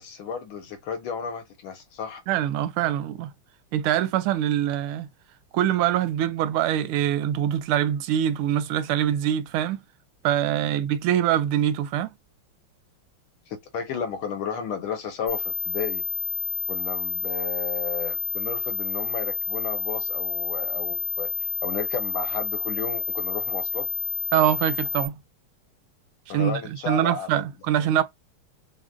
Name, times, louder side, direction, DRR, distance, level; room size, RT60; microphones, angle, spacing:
voice 1, 0.0-2.2 10.6-10.7 13.5-16.0 16.7-23.9 26.3-27.4 27.8-27.9, left 6 dB, 85° left, 1.7 m, -33 dB
voice 2, 2.3-3.3 3.7-5.1 5.5-9.8 10.2-12.1 24.3-25.2 26.3-28.0, right 11 dB, 85° right, 1.4 m, -24 dB
sound 1, 15.3-25.1, left 4 dB, 25° left, 1.0 m, -29 dB
6.1 x 2.1 x 2.5 m
omnidirectional pair, 2.3 m